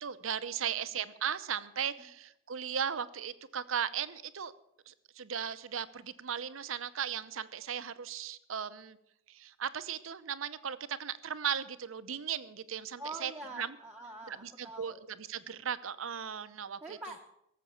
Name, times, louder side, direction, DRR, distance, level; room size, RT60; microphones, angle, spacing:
voice 1, 0.0-4.5 4.9-9.0 9.3-13.8 14.3-17.0, right 8 dB, 80° right, 14 dB, 0.8 m, -37 dB
voice 2, 13.0-15.0 16.8-17.2, right 2 dB, 5° right, -1 dB, 1.2 m, -45 dB
17.5 x 7.6 x 7.0 m, 0.80 s
head